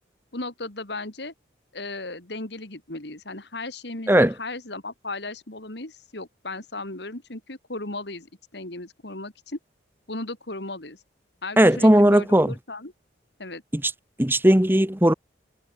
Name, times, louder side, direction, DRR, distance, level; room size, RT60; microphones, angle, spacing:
voice 1, 0.3-1.3 1.7-9.6 10.1-11.0 11.4-12.9 13.4-13.6, left 2 dB, 60° left, 2.9 m, -36 dB
voice 2, 11.6-12.5 13.7-13.8 14.2-15.1, right 1 dB, 10° right, 1.2 m, -17 dB
head